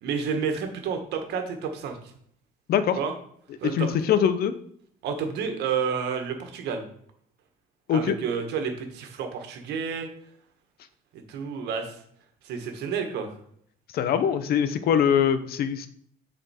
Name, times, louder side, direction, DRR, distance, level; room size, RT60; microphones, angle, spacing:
voice 1, 0.0-2.0 3.0-3.1 3.6-3.9 5.0-6.8 7.9-10.1 11.3-12.0 12.4-13.3, right 6 dB, 80° right, 5 dB, 1.5 m, -30 dB
voice 2, 3.6-4.5 7.9-8.2 13.9-15.9, left 8 dB, 65° left, 12 dB, 0.8 m, -23 dB
8.0 x 4.4 x 4.3 m, 0.64 s
cardioid pair, 110°, 17 cm